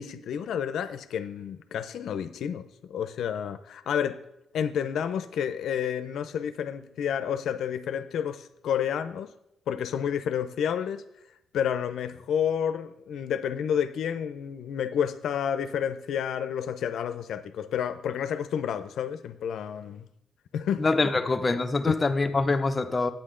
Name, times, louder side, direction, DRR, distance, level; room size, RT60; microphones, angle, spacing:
voice 1, 0.0-4.2 4.5-9.3 9.7-11.0 11.5-20.1 20.5-20.9 21.9-22.0, left 8 dB, 70° left, 0.6 m, -30 dB
voice 2, 20.8-23.1, left 3 dB, 25° left, 0.6 m, -25 dB
9.9 x 8.8 x 3.8 m
cardioid pair, 120°, 0 cm